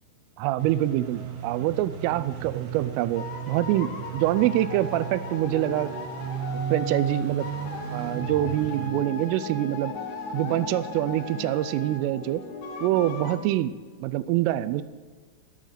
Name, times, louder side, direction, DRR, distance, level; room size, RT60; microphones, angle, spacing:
voice 1, 0.4-5.9 6.7-7.5 7.9-9.9 10.3-12.5 12.8-14.8, right 14 dB, 85° right, 14 dB, 3.1 m, -25 dB
sound 1, 0.6-8.9, right 8 dB, 65° right, 2.2 m, -36 dB
sound 2, 2.9-13.4, left 3 dB, 90° left, 1.7 m, -37 dB
20.0 x 10.5 x 3.9 m, 1.4 s
omnidirectional pair, 5.7 m